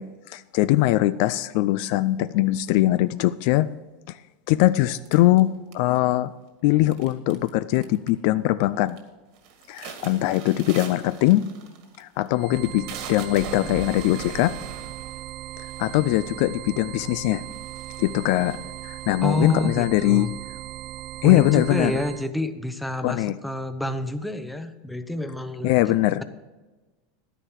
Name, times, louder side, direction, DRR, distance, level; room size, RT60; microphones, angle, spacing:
voice 1, 0.0-3.7 4.1-4.2 4.5-6.3 6.6-9.0 9.7-11.5 12.0-14.5 15.8-17.4 18.0-20.3 21.2-22.0 23.0-23.4 25.6-26.2, left 16 dB, 60° left, 15 dB, 0.4 m, -21 dB
sound 1, 5.0-6.1 6.9-7.5 7.7-8.3 8.6-9.0 9.4-16.4 17.1-17.2 17.5-19.1, right 6 dB, 55° right, 1.9 m, -40 dB
sound 2, 12.3-22.3, right 15 dB, 40° right, 0.3 m, -38 dB
voice 2, 19.2-20.3 21.2-25.9, left 1 dB, ahead, 9 dB, 0.7 m, -28 dB
11.0 x 9.9 x 4.6 m, 1.2 s
supercardioid pair, 145°, 0 cm